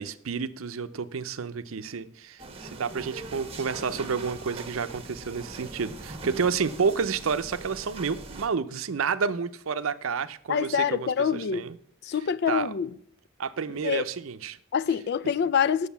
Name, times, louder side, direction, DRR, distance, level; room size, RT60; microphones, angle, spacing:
voice 1, 0.0-11.8 12.5-12.7 13.4-14.6, right 5 dB, 80° right, 0.6 m, -30 dB
sound 1, 2.4-8.5, right 2 dB, 30° right, 1.2 m, -41 dB
voice 2, 10.5-11.7 12.0-12.9 13.8-14.0 14.7-15.9, left 7 dB, 55° left, 0.4 m, -25 dB
7.3 x 6.4 x 6.9 m
head